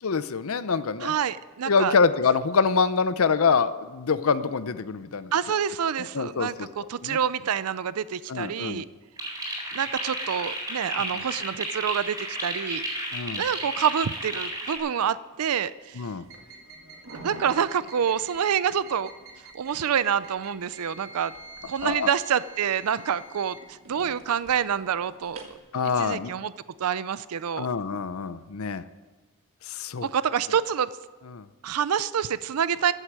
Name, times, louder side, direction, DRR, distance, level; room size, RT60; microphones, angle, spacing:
voice 1, 0.0-1.1 1.7-5.3 6.1-7.2 8.3-8.8 13.1-13.4 16.0-16.3 21.8-22.1 25.7-26.3 27.6-28.9 29.6-30.1 31.3-31.5, left 5 dB, 70° left, 13 dB, 0.6 m, -25 dB
voice 2, 1.0-2.0 5.3-8.9 9.7-12.8 13.4-16.1 17.1-19.1 19.5-21.3 21.7-25.4 26.0-26.5 26.8-27.7 30.0-31.0 31.6-32.9, right 8 dB, 85° right, 16 dB, 0.5 m, -27 dB
sound 1, 9.2-14.8, right 1 dB, 15° right, 4.3 m, -33 dB
sound 2, 16.2-25.6, right 2 dB, 60° right, 2.0 m, -46 dB
14.5 x 8.1 x 7.5 m, 1.3 s
head